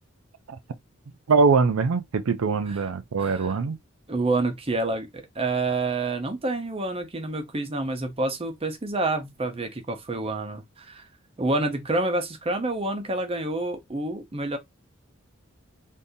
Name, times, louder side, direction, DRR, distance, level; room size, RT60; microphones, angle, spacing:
voice 1, 1.3-3.8, right 4 dB, 80° right, 0.5 m, -22 dB
voice 2, 3.2-3.6 4.1-11.1 11.4-14.6, right 2 dB, 25° right, 0.7 m, -28 dB
3.7 x 2.6 x 2.7 m
head